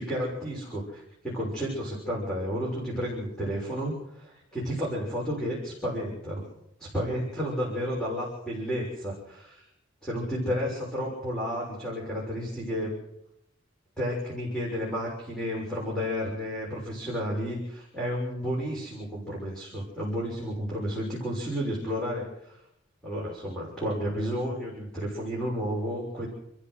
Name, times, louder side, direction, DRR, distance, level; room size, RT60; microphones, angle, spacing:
voice 1, 0.0-4.3 4.6-6.4 6.8-9.6 10.0-12.9 14.0-22.6 23.0-26.3, equal, 5° left, -4 dB, 6.3 m, -32 dB
29.0 x 14.0 x 6.5 m, 0.81 s
head